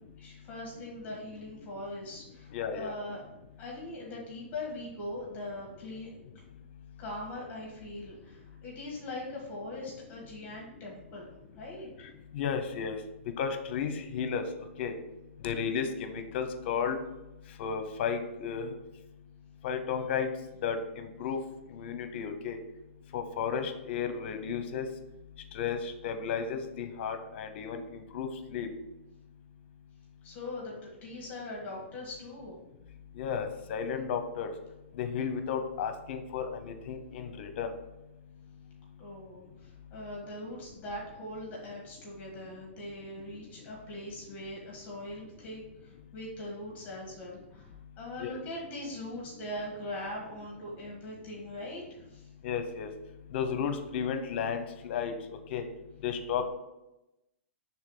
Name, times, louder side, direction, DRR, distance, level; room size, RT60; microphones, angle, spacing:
voice 1, 0.2-3.2 3.6-6.2 7.0-11.9 30.2-32.6 39.0-52.3, left 1 dB, 25° left, -3 dB, 1.7 m, -41 dB
voice 2, 2.5-2.9 12.3-13.0 13.4-14.4 14.8-14.9 15.4-17.0 17.6-18.7 19.6-20.3 20.6-21.4 21.7-22.6 23.1-24.9 25.5-27.8 28.1-28.7 33.2-34.5 35.0-37.7 48.2-48.3 52.4-52.9 53.3-55.1 55.5-55.6 56.0-56.5, left 7 dB, 50° left, 8 dB, 0.8 m, -33 dB
6.4 x 3.5 x 4.9 m, 0.95 s
hypercardioid pair, 150°, 7 cm